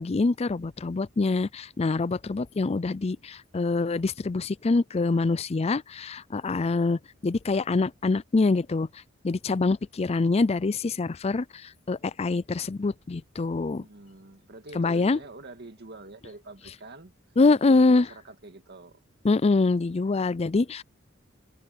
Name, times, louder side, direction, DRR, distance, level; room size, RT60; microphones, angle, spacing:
voice 1, 0.0-8.9 9.2-13.8 14.8-15.2 17.4-18.1 19.2-20.8, left 3 dB, 30° left, 0.4 m, -25 dB
voice 2, 13.7-17.1 17.5-19.0, right 2 dB, 55° right, 2.0 m, -46 dB
head